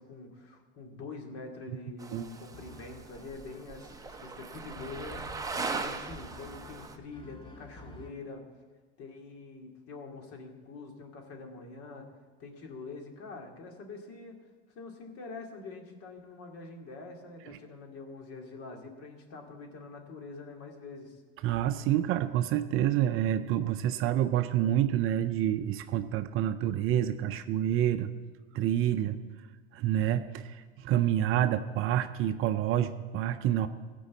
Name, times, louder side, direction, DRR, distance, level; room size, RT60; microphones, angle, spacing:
voice 1, 0.0-8.4 9.0-12.1 12.4-14.4 14.7-21.2, left 3 dB, 45° left, 2 dB, 2.4 m, -45 dB
sound 1, 2.0-7.0, right 4 dB, 10° right, 0.8 m, -39 dB
sound 2, 2.5-8.1, equal, 15° left, 1.4 m, -52 dB
voice 2, 21.4-28.1 28.5-29.2 29.7-33.7, right 11 dB, 40° right, 10 dB, 0.6 m, -28 dB
16.0 x 5.4 x 8.3 m, 1.4 s
supercardioid pair, 120°, 33 cm